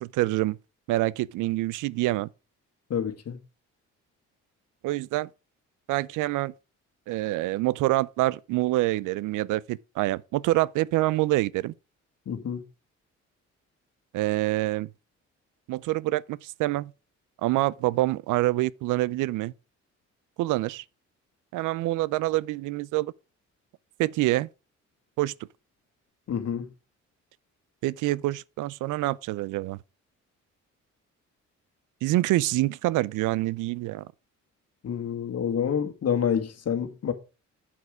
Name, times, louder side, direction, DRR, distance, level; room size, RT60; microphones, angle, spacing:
voice 1, 0.0-0.6 0.9-2.3 4.8-5.3 5.9-6.5 7.1-11.7 14.1-14.9 15.7-16.9 17.4-19.5 20.4-20.8 21.5-23.1 24.0-24.5 25.2-25.3 27.8-29.8 32.0-34.1, right 17 dB, 90° right, 0.5 m, -26 dB
voice 2, 2.9-3.4 12.3-12.6 26.3-26.7 34.8-37.1, left 8 dB, 55° left, 1.8 m, -28 dB
8.0 x 7.6 x 4.8 m
cardioid pair, 90°, 30 cm